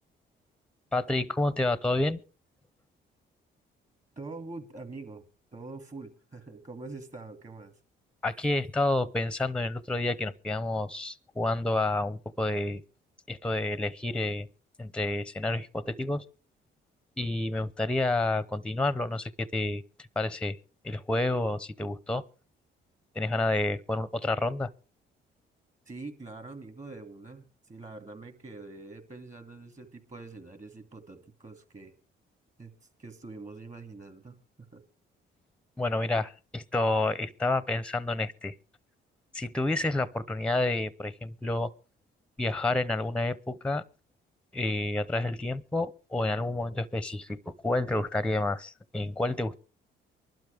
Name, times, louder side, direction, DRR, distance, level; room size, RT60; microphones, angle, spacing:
voice 1, 0.9-2.2 8.2-12.8 13.3-14.5 14.8-16.2 17.2-19.8 20.2-20.6 20.8-22.2 23.1-24.7 35.8-38.5 39.3-41.7 42.4-43.8 44.5-49.6, left 2 dB, 5° left, 0.6 m, -29 dB
voice 2, 4.2-5.3 5.5-7.8 25.9-32.0 32.6-32.7 33.0-34.4 34.7-34.8, right 3 dB, 35° right, 2.6 m, -44 dB
23.5 x 12.0 x 3.4 m
cardioid pair, 90°, 20 cm